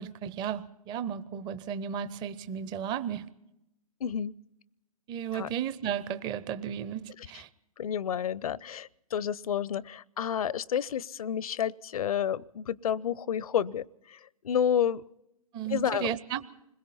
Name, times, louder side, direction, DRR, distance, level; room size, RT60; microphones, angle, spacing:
voice 1, 0.0-3.3 5.1-7.5 15.5-16.4, right 9 dB, 25° right, 14 dB, 0.7 m, -34 dB
voice 2, 4.0-4.4 5.3-5.5 7.8-15.0 15.7-16.1, left 9 dB, 70° left, 24 dB, 0.6 m, -30 dB
29.0 x 21.5 x 4.2 m, 0.85 s
hypercardioid pair, 125°, 19 cm